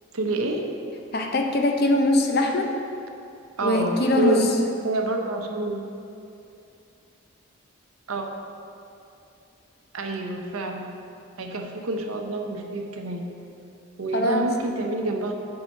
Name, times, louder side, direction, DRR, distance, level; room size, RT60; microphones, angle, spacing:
voice 1, 0.1-0.7 3.6-4.5 4.8-5.8 8.1-8.3 9.9-10.9 11.4-13.3 14.0-15.3, right 2 dB, 85° right, 3 dB, 0.8 m, -27 dB
voice 2, 1.1-2.7 3.6-4.5 14.1-14.4, left 1 dB, 45° left, 3 dB, 0.7 m, -22 dB
5.7 x 5.6 x 6.6 m, 2.6 s
head